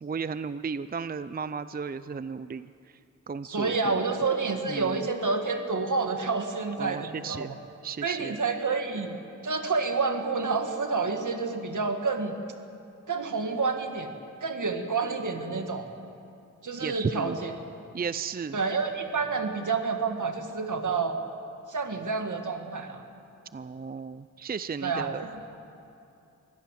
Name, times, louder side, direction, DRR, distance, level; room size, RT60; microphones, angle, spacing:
voice 1, 0.0-2.7 3.3-4.2 4.7-5.1 6.8-7.6 7.8-8.4 16.8-17.4 17.9-18.6 23.5-25.2, right 5 dB, 30° right, 14 dB, 0.5 m, -34 dB
voice 2, 3.4-7.5 8.0-9.2 9.4-12.4 13.1-14.1 14.4-15.9 16.6-17.5 18.5-21.2 21.7-23.0 24.8-25.4, right 4 dB, 70° right, 5 dB, 1.9 m, -29 dB
23.5 x 16.5 x 7.6 m, 2.7 s
wide cardioid pair, 70°, 31 cm